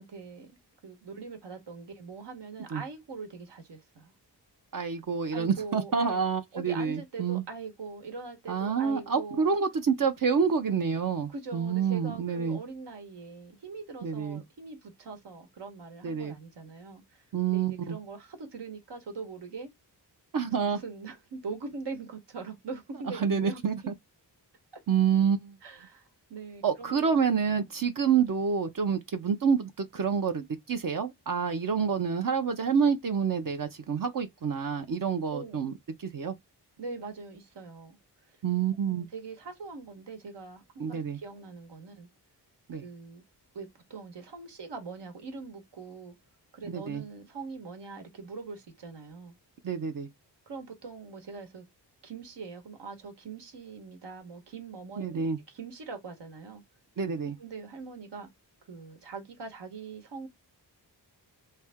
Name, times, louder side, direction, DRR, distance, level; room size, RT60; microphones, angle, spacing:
voice 1, 0.0-4.1 5.3-6.2 6.5-9.6 11.3-17.2 17.5-19.7 20.6-23.6 25.6-27.1 35.3-35.6 36.8-38.0 38.3-38.4 38.8-42.1 42.8-43.2 43.5-46.1 46.5-49.3 50.5-51.6 52.0-56.6 57.4-58.3 58.7-60.3, right 4 dB, 80° right, 1.3 m, -42 dB
voice 2, 4.7-7.4 8.5-12.6 14.0-14.4 16.0-16.3 17.3-18.0 20.3-20.8 23.2-23.9 24.9-25.6 26.6-35.7 36.0-36.3 38.4-39.1 40.8-41.2 42.7-42.8 46.7-47.0 49.6-50.1 55.0-55.4 57.0-57.4, right 6 dB, 50° right, 0.6 m, -28 dB
3.4 x 2.7 x 3.4 m
wide cardioid pair, 120°, 41 cm